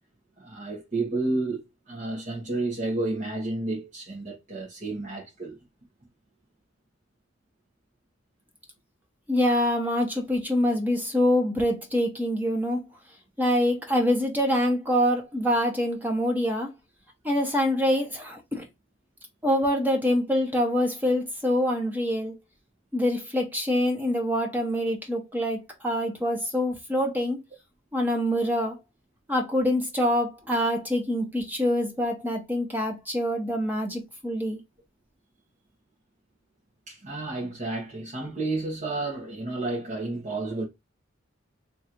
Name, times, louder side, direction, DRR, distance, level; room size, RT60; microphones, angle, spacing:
voice 1, 0.4-5.6 36.9-40.6, right 2 dB, 40° right, 1.2 m, -31 dB
voice 2, 9.3-12.8 13.4-16.7 17.2-18.7 19.4-22.3 22.9-25.6 25.8-27.4 27.9-28.8 29.3-34.6, equal, 10° right, 0.9 m, -25 dB
3.1 x 2.6 x 4.4 m
head